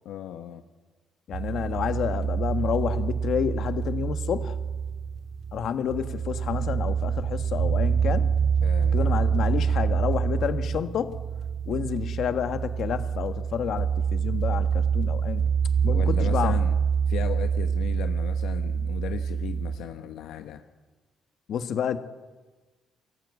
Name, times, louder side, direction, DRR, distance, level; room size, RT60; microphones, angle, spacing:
voice 1, 0.0-0.6 8.6-9.1 15.9-16.8 17.1-20.6, left 10 dB, 90° left, 7 dB, 1.1 m, -36 dB
voice 2, 1.3-4.5 5.5-8.3 8.9-11.2 11.6-15.4 15.8-16.6 21.5-22.0, left 8 dB, 65° left, 9 dB, 1.5 m, -29 dB
sound 1, 1.3-19.8, right 7 dB, 75° right, 2.0 m, -26 dB
28.5 x 14.5 x 8.4 m, 1.3 s
cardioid pair, 90°, 0 cm